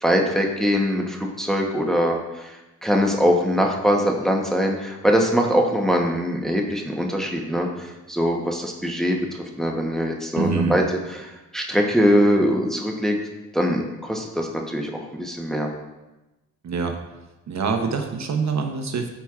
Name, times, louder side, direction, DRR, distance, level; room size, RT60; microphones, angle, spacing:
voice 1, 0.0-2.6 2.8-9.2 9.6-10.8 11.1-13.2 13.5-15.7, equal, ahead, 1 dB, 0.9 m, -22 dB
voice 2, 10.4-10.8 16.6-17.0 17.5-19.1, right 5 dB, 55° right, 4 dB, 0.8 m, -25 dB
12.5 x 4.5 x 2.4 m, 1.0 s
cardioid pair, 95°, 34 cm